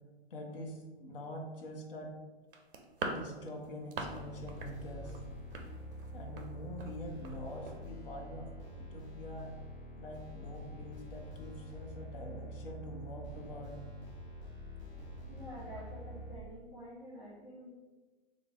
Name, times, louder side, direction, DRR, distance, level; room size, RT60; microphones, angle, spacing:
voice 1, 0.3-2.2 3.1-5.2 6.1-9.6 10.0-13.8 15.8-15.9, equal, 55° left, 1 dB, 0.7 m, -45 dB
sound 1, 2.5-4.2 4.5-4.8 5.0-6.5 6.8-7.0 7.2-7.4 7.7-7.8, right 3 dB, 55° right, 0.5 m, -41 dB
sound 2, 4.0-16.4, equal, 30° left, 1.0 m, -46 dB
voice 2, 15.3-17.7, equal, 25° right, -10 dB, 1.1 m, -48 dB
3.2 x 2.2 x 3.3 m, 1.3 s
figure-of-eight pair, 115°, 33 cm